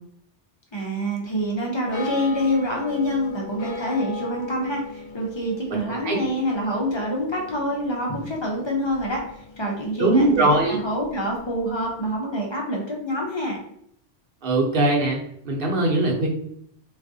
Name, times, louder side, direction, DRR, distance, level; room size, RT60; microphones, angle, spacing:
voice 1, 0.7-9.2 9.6-13.6, equal, 40° left, -1 dB, 0.4 m, -26 dB
sound 1, 1.9-12.2, left 4 dB, 65° left, 0.8 m, -39 dB
voice 2, 5.9-6.2 10.0-10.8 14.4-15.2 15.4-16.3, right 2 dB, 55° right, -1 dB, 0.8 m, -20 dB
3.4 x 2.4 x 2.6 m, 0.69 s
omnidirectional pair, 1.2 m